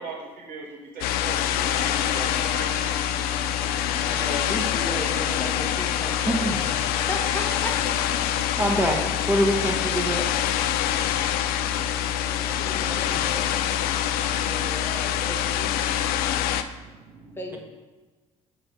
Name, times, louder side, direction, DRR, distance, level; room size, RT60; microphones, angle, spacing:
voice 1, 0.0-2.9 10.8-11.3 12.9-13.1 16.1-17.6, right 4 dB, 60° right, -3 dB, 2.0 m, -41 dB
sound 1, 1.0-16.6, left 10 dB, 65° left, 0.4 m, -25 dB
Alarm, 1.7-7.0, equal, 90° right, 1.1 m, -42 dB
voice 2, 3.9-6.5 7.0-8.0 12.3-13.9 14.3-15.8 17.4-17.6, left 1 dB, 15° left, 0 dB, 1.3 m, -36 dB
voice 3, 6.2-6.6 8.6-10.3 11.6-12.0 13.1-13.2, equal, 10° right, 1 dB, 1.5 m, -25 dB
5.7 x 4.3 x 5.5 m, 1.3 s
hypercardioid pair, 55°, 17 cm